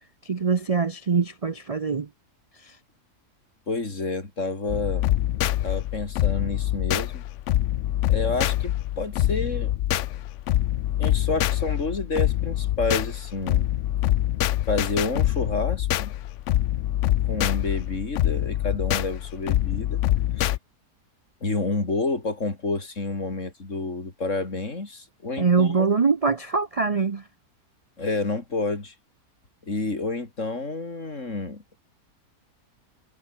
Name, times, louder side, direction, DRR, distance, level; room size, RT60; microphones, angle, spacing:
voice 1, 0.2-2.1 2.6-2.8 25.4-27.2, right 5 dB, 45° right, 0.4 m, -23 dB
voice 2, 3.7-5.1 5.4-7.2 8.1-9.7 11.0-13.7 14.7-16.1 17.2-20.0 20.4-20.6 21.4-25.9 28.0-28.9 29.6-31.6, left 3 dB, 45° left, 4.2 m, -29 dB
sound 1, 4.7-20.6, left 13 dB, 70° left, 0.7 m, -25 dB
omnidirectional pair, 1.7 m